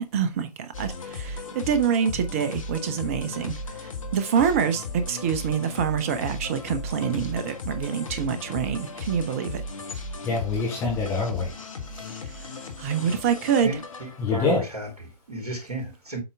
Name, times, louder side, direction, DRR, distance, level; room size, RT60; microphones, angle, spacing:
voice 1, 0.0-3.5 4.1-9.6 12.8-13.7, right 7 dB, 20° right, 0.6 m, -26 dB
sound 1, 0.7-14.6, left 2 dB, 55° left, 1.3 m, -36 dB
voice 2, 10.2-11.5 11.9-12.1 14.2-14.6, left 4 dB, 15° left, 2.0 m, -26 dB
voice 3, 13.6-16.2, right 1 dB, 70° right, 2.7 m, -34 dB
7.9 x 4.4 x 3.5 m
figure-of-eight pair, 135°, 20 cm